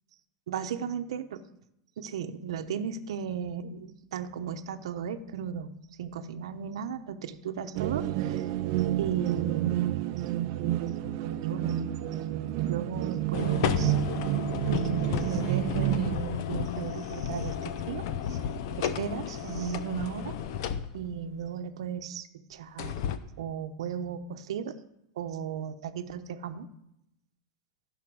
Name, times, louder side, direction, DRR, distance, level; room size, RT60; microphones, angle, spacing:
voice 1, 0.5-1.4 2.0-5.7 6.0-8.4 9.0-9.8 11.4-11.8 12.6-14.0 14.7-18.4 18.8-20.4 20.9-22.9 23.4-24.8 25.2-26.7, right 7 dB, 85° right, 9 dB, 0.9 m, -35 dB
sound 1, 7.7-16.2, right 13 dB, 45° right, 0.6 m, -29 dB
sound 2, 13.3-21.2 22.8-23.2, left 8 dB, 55° left, 0.7 m, -33 dB
14.5 x 5.8 x 6.2 m, 0.82 s
supercardioid pair, 165°, 3 cm